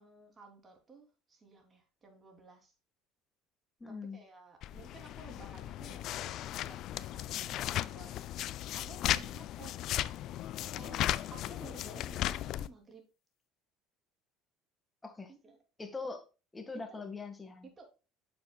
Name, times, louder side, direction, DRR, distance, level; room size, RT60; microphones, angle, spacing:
voice 1, 0.0-2.7 4.1-8.2 8.7-9.7 10.7-11.0 11.3-13.0 15.3-15.6 16.9-17.0 17.6-18.0, right 3 dB, 30° right, 3 dB, 3.2 m, -54 dB
voice 2, 3.8-4.2 15.0-15.3 15.8-16.2 16.5-17.7, left 4 dB, 15° left, 6 dB, 1.9 m, -42 dB
sound 1, 4.6-12.7, left 13 dB, 60° left, 0.5 m, -36 dB
9.3 x 7.0 x 2.3 m, 0.31 s
supercardioid pair, 100°, 0 cm